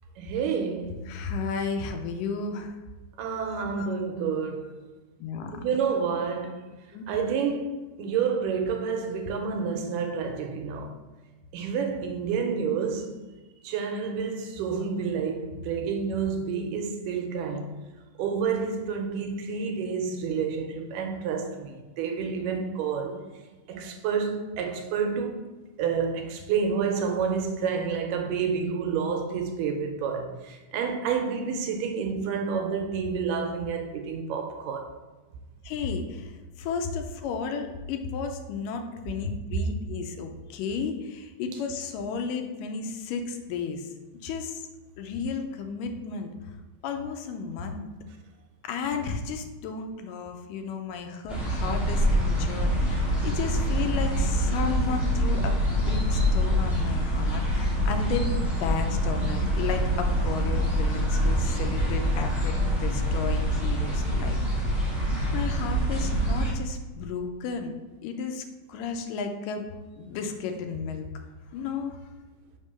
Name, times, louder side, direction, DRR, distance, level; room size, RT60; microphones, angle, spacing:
voice 1, 0.2-1.0 3.2-4.8 5.6-6.6 7.1-10.9 11.5-13.2 13.6-17.7 18.2-23.2 23.7-25.4 25.8-34.9, right 6 dB, 90° right, 2.2 m, -29 dB
voice 2, 1.1-2.8 3.5-4.0 5.2-5.6 6.9-7.1 35.6-43.9 44.2-44.6 45.0-46.3 46.8-47.9 48.6-58.3 58.6-64.4 64.7-64.9 65.3-67.7 68.0-69.7 70.0-71.1 71.5-72.0, left 5 dB, 90° left, 2.2 m, -33 dB
sound 1, 51.3-66.5, equal, ahead, 0.6 m, -25 dB
5.1 x 3.6 x 5.4 m
omnidirectional pair, 3.8 m